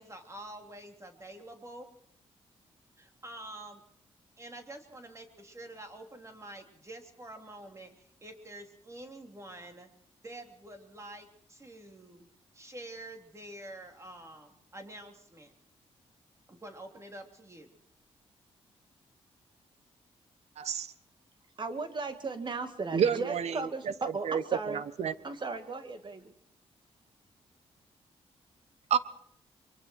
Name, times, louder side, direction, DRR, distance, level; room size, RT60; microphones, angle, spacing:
voice 1, 0.0-1.9 3.0-3.8 4.4-9.9 10.2-12.3 12.5-15.5 16.5-17.7, right 1 dB, 25° right, 4 dB, 3.3 m, -47 dB
voice 2, 20.6-20.9 22.9-23.6 24.2-24.4 24.7-25.1 28.9-29.0, right 8 dB, 75° right, 15 dB, 1.1 m, -28 dB
voice 3, 21.6-24.8 25.2-26.3, right 3 dB, 45° right, 8 dB, 2.3 m, -36 dB
24.0 x 23.0 x 4.7 m, 0.66 s
cardioid pair, 75°, 11 cm